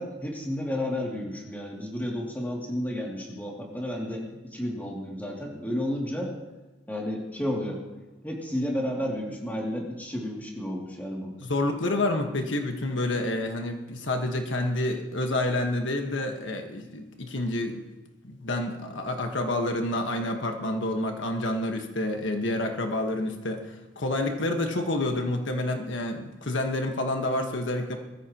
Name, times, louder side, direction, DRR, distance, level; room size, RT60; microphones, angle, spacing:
voice 1, 0.0-6.3 6.9-7.8 8.2-11.3, left 1 dB, 10° left, -2 dB, 2.6 m, -32 dB
voice 2, 11.4-17.8 18.2-28.0, left 1 dB, 80° left, 4 dB, 1.5 m, -28 dB
21.0 x 14.5 x 3.0 m, 1.1 s
head